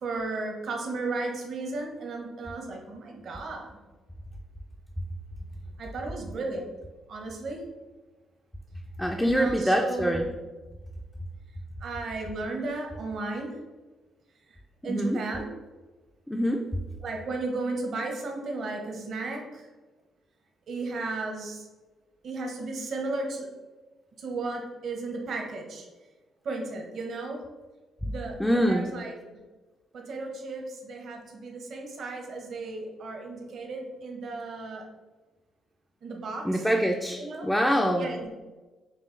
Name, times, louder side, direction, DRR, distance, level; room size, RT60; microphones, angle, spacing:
voice 1, 0.0-3.8 5.8-6.7 7.1-7.6 9.2-10.3 11.8-13.5 14.5-14.6 14.8-15.5 17.0-19.7 20.7-21.7 22.2-23.5 24.2-25.9 26.4-27.4 28.0-29.1 29.9-34.9 36.0-36.6 37.2-37.5 38.0-38.4, right 3 dB, 60° right, 1 dB, 0.8 m, -34 dB
voice 2, 9.0-10.3 14.8-15.2 16.3-16.7 28.4-28.9 36.4-38.1, equal, 5° left, 2 dB, 0.3 m, -25 dB
5.5 x 2.3 x 3.1 m, 1.2 s
cardioid pair, 90°, 0 cm